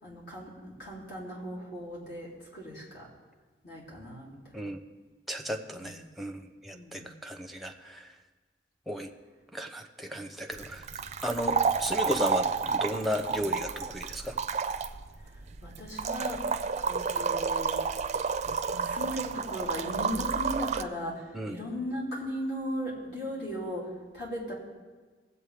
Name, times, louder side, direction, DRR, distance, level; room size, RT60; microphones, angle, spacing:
voice 1, 0.0-3.1 3.6-4.7 5.7-6.1 6.7-7.1 15.3-16.5 16.9-17.8 18.6-24.5, equal, 65° left, -6 dB, 3.8 m, -37 dB
voice 2, 5.3-8.1 8.9-9.1 9.5-10.9 11.2-14.4 21.3-21.6, equal, ahead, 4 dB, 0.8 m, -34 dB
sound 1, 10.5-20.8, right 5 dB, 40° right, 0.4 m, -30 dB
19.5 x 8.0 x 3.5 m, 1.4 s
head